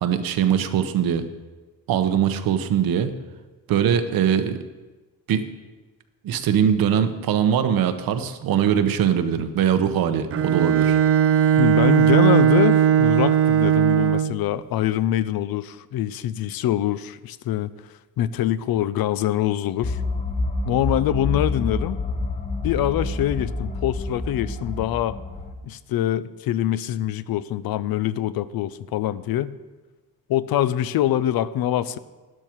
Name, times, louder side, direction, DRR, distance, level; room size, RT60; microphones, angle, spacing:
voice 1, 0.0-1.3 1.9-3.1 3.7-4.6 5.3-5.5 6.2-11.0, right 8 dB, 80° right, 9 dB, 1.1 m, -21 dB
Bowed string instrument, 10.3-14.5, right 9 dB, 40° right, 0.4 m, -18 dB
voice 2, 11.6-17.7 18.2-20.0 20.6-22.0 22.6-25.2 25.6-29.5 30.3-32.0, left 12 dB, 80° left, 15 dB, 0.6 m, -24 dB
sound 1, 19.8-25.5, left 2 dB, 20° left, 0.9 m, -28 dB
12.5 x 12.0 x 4.6 m, 1.2 s
cardioid pair, 145°, 35 cm